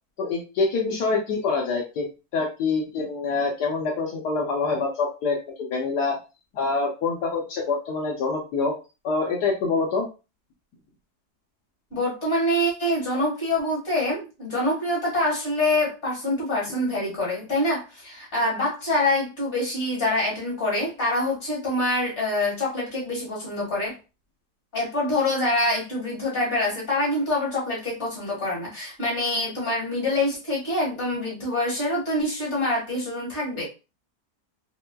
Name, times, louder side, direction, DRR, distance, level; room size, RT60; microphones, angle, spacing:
voice 1, 0.2-2.1 2.3-6.2 6.5-8.7 9.0-10.0, left 4 dB, 80° left, -1 dB, 1.3 m, -25 dB
voice 2, 11.9-24.0 24.7-33.6, left 1 dB, 45° left, -4 dB, 2.0 m, -25 dB
4.2 x 2.2 x 2.2 m, 0.30 s
omnidirectional pair, 1.7 m